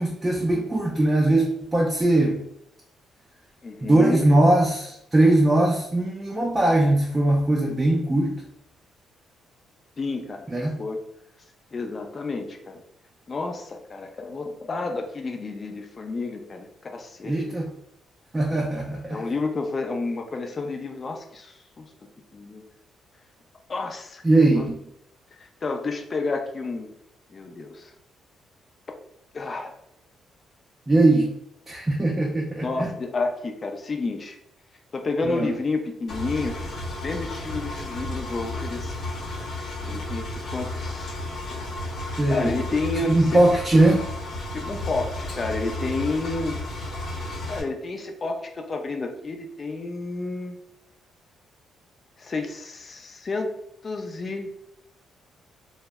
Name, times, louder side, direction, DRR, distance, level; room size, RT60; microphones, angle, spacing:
voice 1, 0.0-2.4 3.8-8.3 10.5-10.8 17.2-17.7 18.3-19.2 24.2-24.7 30.9-31.3 31.7-32.9 35.3-35.5 42.2-42.5 43.1-44.0, right 1 dB, 20° right, -2 dB, 0.4 m, -20 dB
voice 2, 3.6-4.3 10.0-10.5 10.8-11.0 11.7-12.8 13.3-17.6 19.1-21.9 22.3-22.6 23.7-24.2 24.5-24.7 25.4-26.9 27.3-27.9 29.3-29.8 32.6-34.4 34.9-36.6 37.0-38.9 39.9-41.2 42.3-43.5 44.5-46.6 47.5-50.6 52.2-53.5 53.8-54.5, left 3 dB, 35° left, 4 dB, 0.4 m, -30 dB
Engine, 36.1-47.6, left 1 dB, 65° left, 0.9 m, -33 dB
2.0 x 2.0 x 3.4 m, 0.75 s
cardioid pair, 90°, 0 cm